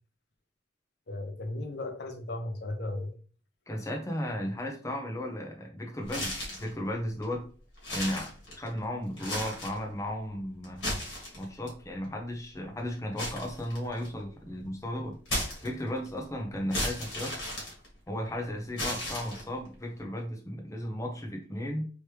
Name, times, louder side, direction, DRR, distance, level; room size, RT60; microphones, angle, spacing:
voice 1, 1.1-3.1, left 2 dB, 60° left, 6 dB, 0.6 m, -35 dB
voice 2, 3.7-7.4 7.9-10.9 11.4-15.2 15.6-17.3 18.1-21.9, left 1 dB, 15° left, 1 dB, 0.7 m, -35 dB
sound 1, 6.0-6.7 7.2-7.3 7.8-8.8 9.1-9.8 10.6-11.7 13.2-14.2 15.3-16.1 16.7-18.3 18.8-19.7, left 1 dB, 75° left, 1.5 m, -34 dB
3.1 x 3.0 x 3.2 m, 0.41 s
head